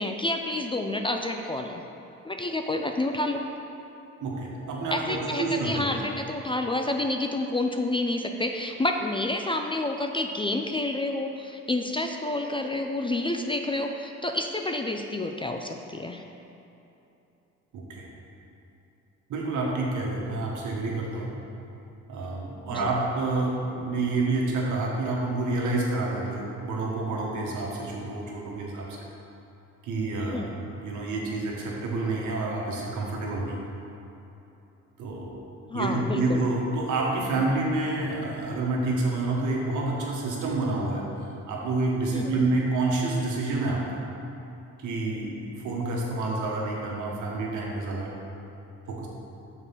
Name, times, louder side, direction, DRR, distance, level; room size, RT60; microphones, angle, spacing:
voice 1, 0.0-1.8 2.2-3.4 4.9-16.2 22.7-22.9 30.3-30.5 35.7-36.4 42.1-42.5, left 2 dB, 15° left, 4 dB, 0.4 m, -29 dB
voice 2, 4.2-5.8 17.7-18.1 19.3-21.3 22.1-29.0 29.8-33.6 35.0-35.3 35.7-41.0 41.5-44.0 44.8-48.1 48.9-49.1, right 2 dB, 80° right, -2 dB, 1.4 m, -28 dB
6.5 x 4.4 x 5.8 m, 2.9 s
cardioid pair, 90°, 30 cm